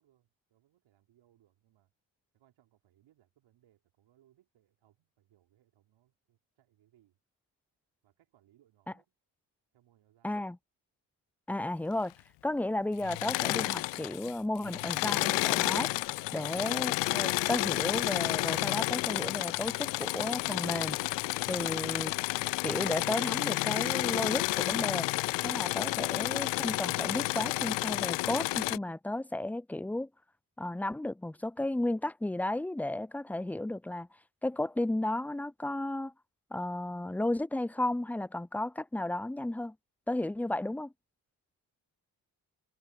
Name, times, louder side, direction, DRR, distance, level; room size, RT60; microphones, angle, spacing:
voice 1, 0.0-1.9 2.3-7.2 8.0-9.1 9.7-10.4, right 13 dB, 65° right, 4.7 m, -69 dB
voice 2, 10.2-10.6 11.5-12.1 12.4-15.9 16.3-21.0 21.5-22.1 22.6-25.1 25.4-30.1 30.6-34.1 34.4-36.1 36.5-39.7 40.1-40.9, left 1 dB, 5° left, 0.5 m, -33 dB
Engine / Mechanisms, 13.0-14.3 14.6-28.8, left 26 dB, 60° left, 0.5 m, -31 dB
hypercardioid pair, 45°, 50 cm